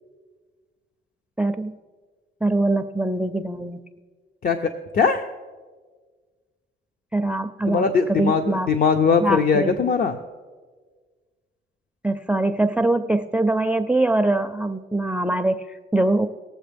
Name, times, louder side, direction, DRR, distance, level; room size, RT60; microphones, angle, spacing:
voice 1, 1.4-1.7 2.4-3.8 7.1-7.8 8.1-8.7 9.2-9.9 12.0-16.3, right 2 dB, 5° right, 12 dB, 0.4 m, -23 dB
voice 2, 4.4-5.2 7.7-10.2, left 5 dB, 50° left, 6 dB, 0.6 m, -20 dB
19.5 x 7.2 x 3.4 m, 1.5 s
cardioid pair, 90°, 20 cm